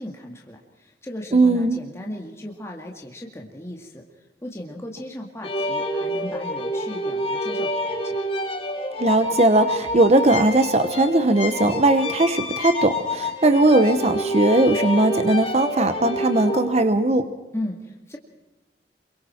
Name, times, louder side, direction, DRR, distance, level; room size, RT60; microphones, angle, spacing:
voice 1, 0.0-4.0 4.4-8.3 17.5-18.2, left 1 dB, 15° left, 0 dB, 2.1 m, -36 dB
voice 2, 1.3-1.8 9.0-17.3, right 2 dB, 35° right, 9 dB, 1.0 m, -19 dB
sound 1, 5.4-16.7, left 1 dB, 35° left, 3.2 m, -28 dB
27.0 x 24.0 x 4.5 m, 1.1 s
head